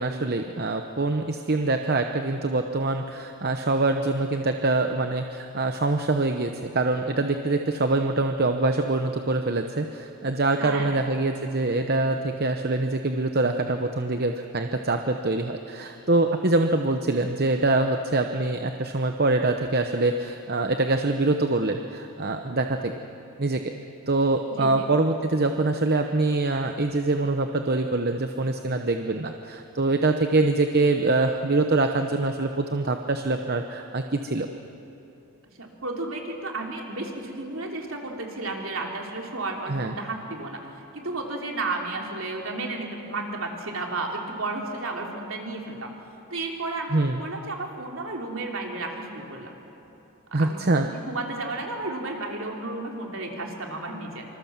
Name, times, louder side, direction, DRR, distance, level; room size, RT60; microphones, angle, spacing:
voice 1, 0.0-22.9 23.4-23.6 24.1-34.5 39.7-39.9 46.9-47.2 50.3-50.9, right 2 dB, 45° right, 6 dB, 0.9 m, -24 dB
voice 2, 10.6-11.1 24.5-24.7 35.6-40.6 40.9-45.9 46.3-49.5 50.3-54.3, right 2 dB, 65° right, 1 dB, 3.5 m, -33 dB
26.0 x 26.0 x 7.4 m, 2.9 s
head